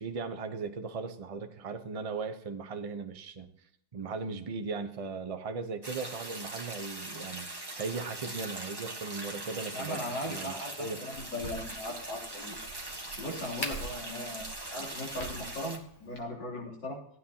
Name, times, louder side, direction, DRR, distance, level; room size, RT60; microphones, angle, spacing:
voice 1, 0.0-3.6 3.9-10.0 10.3-11.0, right 4 dB, 55° right, 7 dB, 0.3 m, -38 dB
sound 1, 5.8-15.8, right 2 dB, 15° right, 1.4 m, -41 dB
voice 2, 9.7-12.6 13.0-17.0, left 1 dB, 75° left, -2 dB, 4.0 m, -38 dB
Crack, 11.1-16.2, equal, 25° left, 1.8 m, -44 dB
15.5 x 9.4 x 2.8 m, 0.72 s
omnidirectional pair, 2.0 m